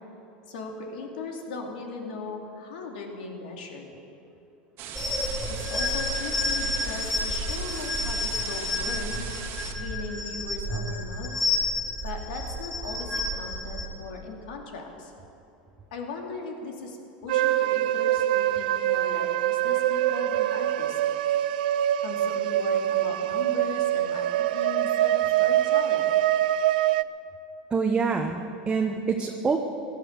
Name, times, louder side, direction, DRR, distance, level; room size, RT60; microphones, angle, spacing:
voice 1, 0.5-3.9 5.6-9.2 9.7-11.5 12.0-15.1 15.9-17.0 17.2-21.0 22.0-26.1, left 3 dB, 75° left, 2 dB, 2.5 m, -38 dB
sound 1, 4.8-9.7, right 8 dB, 55° right, 1.7 m, -39 dB
sound 2, 4.9-13.9, left 2 dB, 15° left, 4.3 m, -30 dB
sound 3, 17.3-27.0, right 13 dB, 80° right, 0.4 m, -24 dB
voice 2, 27.7-29.6, right 5 dB, 20° right, 2 dB, 1.1 m, -26 dB
16.5 x 11.0 x 6.9 m, 2.8 s
hypercardioid pair, 100°, 5 cm